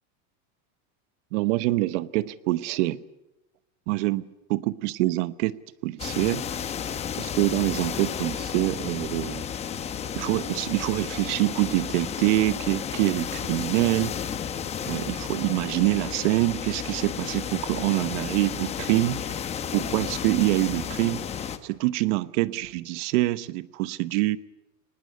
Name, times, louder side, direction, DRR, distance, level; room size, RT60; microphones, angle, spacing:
voice 1, 1.3-3.0 3.9-4.2 4.5-5.6 5.8-6.5 7.2-9.5 10.1-14.2 14.9-19.4 19.7-21.3 21.6-24.4, right 18 dB, 70° right, 1.0 m, -25 dB
sound 1, 6.0-21.6, left 8 dB, 15° left, 0.8 m, -33 dB
23.0 x 20.0 x 8.5 m
cardioid pair, 180°, 37 cm